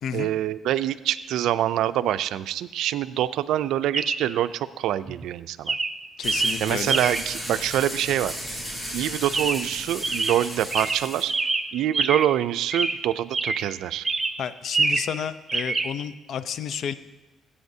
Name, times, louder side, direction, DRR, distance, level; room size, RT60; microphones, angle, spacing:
voice 1, 0.1-5.8 6.6-8.3 8.9-11.3 11.7-14.1, right 12 dB, 85° right, 14 dB, 0.3 m, -25 dB
Chirp tweet, 1.2-1.3 3.9-4.3 5.1-5.3 5.7-7.4 9.3-9.8 10.0-12.4 12.7-13.7 14.0-15.2 15.5-15.9, right 3 dB, 25° right, 0.6 m, -26 dB
voice 2, 6.2-7.0 14.4-16.9, left 8 dB, 70° left, 14 dB, 0.5 m, -31 dB
sound 1, 6.2-11.2, equal, 15° left, 3.1 m, -35 dB
19.0 x 8.5 x 2.7 m, 1.1 s
cardioid pair, 90°, 0 cm